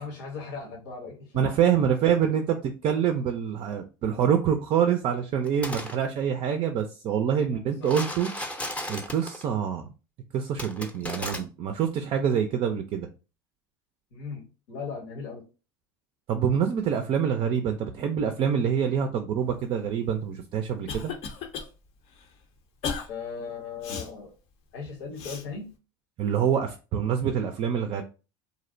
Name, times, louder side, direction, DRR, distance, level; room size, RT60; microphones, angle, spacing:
voice 1, 0.0-2.4 7.5-7.9 14.1-15.4 23.1-24.3 24.7-25.7, left 5 dB, 75° left, -1 dB, 0.9 m, -38 dB
voice 2, 1.3-8.3 8.9-9.9 10.3-13.1 16.3-21.1 26.2-28.0, right 8 dB, 45° right, 6 dB, 0.4 m, -26 dB
sound 1, 5.5-5.9 7.8-9.4 10.6-11.4, left 1 dB, 10° left, 0.6 m, -34 dB
Cough, 20.3-21.7 22.1-22.3 22.8-23.1 23.8-24.1 25.2-25.4, left 5 dB, 55° left, 0.6 m, -34 dB
2.6 x 2.0 x 2.5 m, 0.32 s
hypercardioid pair, 85°, 12 cm